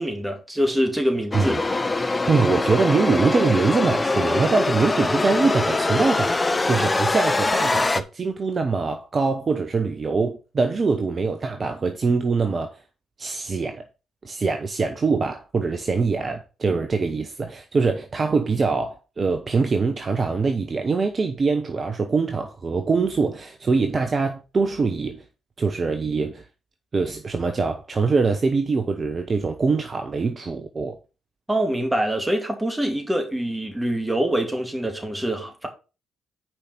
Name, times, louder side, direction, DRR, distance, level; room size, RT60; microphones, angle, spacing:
voice 1, 0.0-1.6 31.5-35.7, right 1 dB, 10° right, 2.4 m, -24 dB
sound 1, 1.3-8.0, left 3 dB, 25° left, 0.7 m, -23 dB
voice 2, 2.3-12.8 13.2-13.8 14.2-25.2 25.6-26.4 26.9-31.0, right 4 dB, 40° right, 0.9 m, -23 dB
6.1 x 5.1 x 6.0 m
figure-of-eight pair, 40°, 0 cm